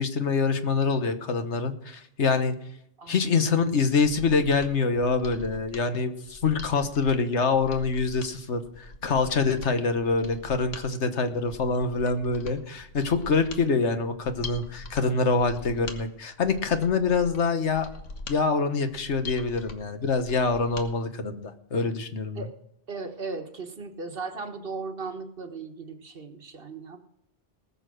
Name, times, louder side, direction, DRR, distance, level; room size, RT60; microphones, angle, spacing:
voice 1, 0.0-2.5 3.1-17.9 18.3-21.4 21.7-22.5, left 4 dB, 70° left, 9 dB, 1.5 m, -25 dB
voice 2, 3.0-3.4 22.3-22.5 22.9-27.0, right 4 dB, 50° right, 7 dB, 1.5 m, -37 dB
Mechanisms, 4.0-20.9 21.2-21.3, left 3 dB, 85° left, 1.8 m, -43 dB
19.5 x 6.8 x 6.3 m, 0.76 s
omnidirectional pair, 1.2 m